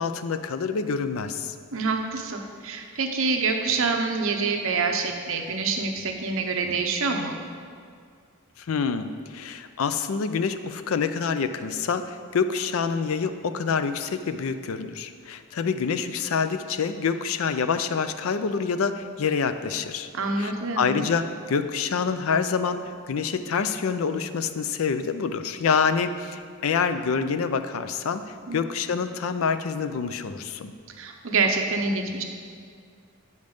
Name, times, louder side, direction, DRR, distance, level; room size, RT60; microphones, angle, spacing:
voice 1, 0.0-1.5 8.6-20.1 20.4-22.8 23.1-30.7, left 5 dB, 65° left, 10 dB, 0.4 m, -27 dB
voice 2, 1.7-7.4 20.1-21.0 28.5-28.6 31.0-32.2, right 4 dB, 65° right, 4 dB, 0.8 m, -26 dB
7.8 x 5.3 x 5.3 m, 2.1 s
head